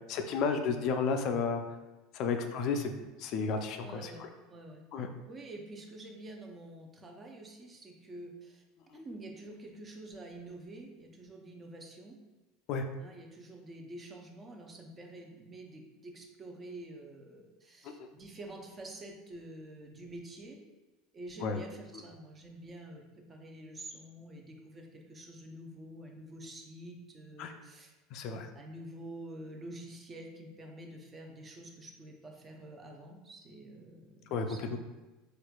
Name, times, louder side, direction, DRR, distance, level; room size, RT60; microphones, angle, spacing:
voice 1, 0.1-1.6 2.1-4.1 4.9-5.1 12.7-12.8 21.4-21.6 27.4-27.5 28.1-28.5 34.3-34.8, left 5 dB, 55° left, 6 dB, 0.3 m, -32 dB
voice 2, 3.8-4.8 5.3-8.6 8.9-12.2 13.0-20.6 21.1-27.9 28.5-34.8, right 1 dB, 30° right, 2 dB, 0.6 m, -48 dB
4.3 x 2.4 x 2.3 m, 1.1 s
hypercardioid pair, 90°, 0 cm